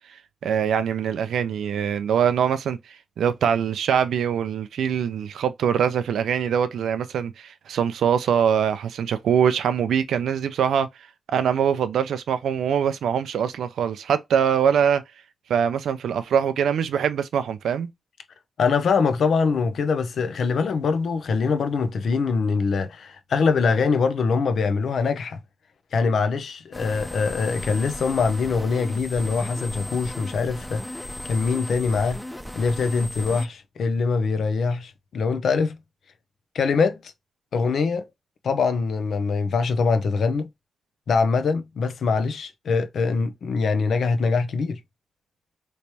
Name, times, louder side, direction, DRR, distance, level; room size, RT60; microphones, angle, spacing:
voice 1, 0.4-10.9 11.3-15.0 15.5-17.9, right 8 dB, 80° right, 0.4 m, -23 dB
voice 2, 18.6-25.4 25.9-32.2 32.6-35.7 36.5-37.1 37.5-38.1 38.4-40.5 41.1-44.8, left 4 dB, 70° left, 0.5 m, -23 dB
sound 1, 26.7-33.5, left 1 dB, 5° left, 0.5 m, -36 dB
3.3 x 3.1 x 2.7 m
supercardioid pair, 45°, 0 cm